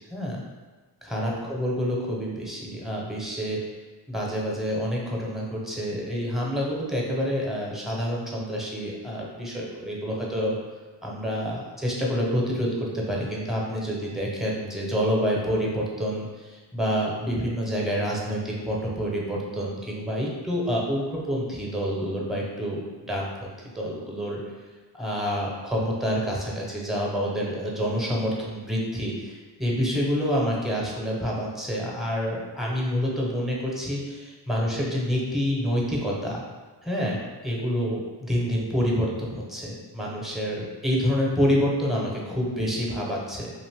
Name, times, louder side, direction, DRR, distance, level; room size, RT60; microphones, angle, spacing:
voice 1, 0.1-0.4 1.0-3.6 4.1-10.6 11.0-24.4 24.9-36.4 36.8-43.5, equal, ahead, -3 dB, 0.8 m, -28 dB
2.6 x 2.5 x 3.5 m, 1.3 s
cardioid pair, 60°, 47 cm